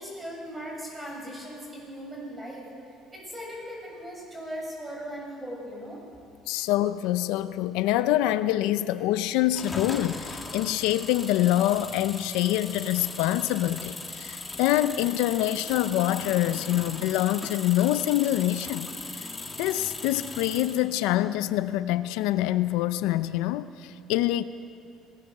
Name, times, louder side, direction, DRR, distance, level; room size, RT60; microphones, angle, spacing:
voice 1, 0.0-2.7 3.1-6.0, equal, 15° right, -2 dB, 7.3 m, -38 dB
voice 2, 6.5-18.9 19.2-19.3 19.6-24.4, left 14 dB, 90° left, 12 dB, 0.7 m, -25 dB
sound 1, 9.5-20.9, left 3 dB, 15° left, 2.0 m, -38 dB
25.0 x 18.0 x 6.7 m, 2.4 s
cardioid pair, 135°, 0 cm